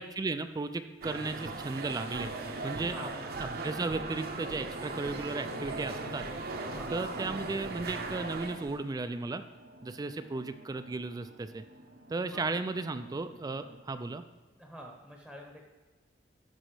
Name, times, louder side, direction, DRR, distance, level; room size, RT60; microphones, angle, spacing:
voice 1, 0.0-2.3 2.6-3.1 3.4-6.2 6.9-9.4 9.8-11.6 12.1-14.2, right 3 dB, 20° right, 10 dB, 0.3 m, -35 dB
sound 1, 1.0-8.8, right 3 dB, 55° right, 0.7 m, -38 dB
voice 2, 2.8-3.2 6.6-7.1 12.2-12.5 14.6-15.7, equal, 5° left, 1 dB, 0.9 m, -47 dB
sound 2, 5.5-13.8, right 1 dB, 85° right, 0.9 m, -56 dB
13.5 x 5.3 x 3.3 m, 1.4 s
head